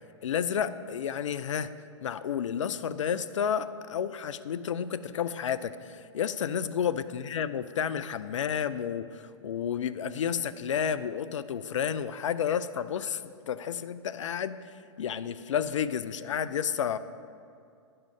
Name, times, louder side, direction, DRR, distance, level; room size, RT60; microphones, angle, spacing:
voice 1, 0.2-1.7 2.0-17.0, left 8 dB, 80° left, 14 dB, 0.5 m, -31 dB
11.0 x 5.5 x 5.3 m, 2.3 s
hypercardioid pair, 125°, 16 cm